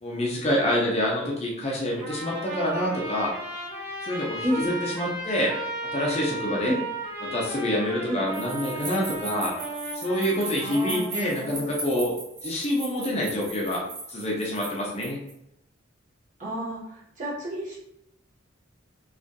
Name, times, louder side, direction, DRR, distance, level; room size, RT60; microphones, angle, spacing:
voice 1, 0.0-3.3 4.0-5.5 5.8-6.7 7.2-9.5 9.9-12.1 12.4-13.8 14.1-15.2, left 1 dB, 35° left, -3 dB, 0.5 m, -27 dB
Trumpet, 2.0-11.1, right 1 dB, 10° right, 1.2 m, -35 dB
voice 2, 4.4-4.7 6.6-6.8 8.1-8.2 10.6-11.7 16.4-17.8, equal, 40° right, -7 dB, 0.9 m, -31 dB
sound 1, 8.3-15.3, right 3 dB, 80° right, 0.7 m, -38 dB
2.5 x 2.4 x 2.3 m, 0.79 s
head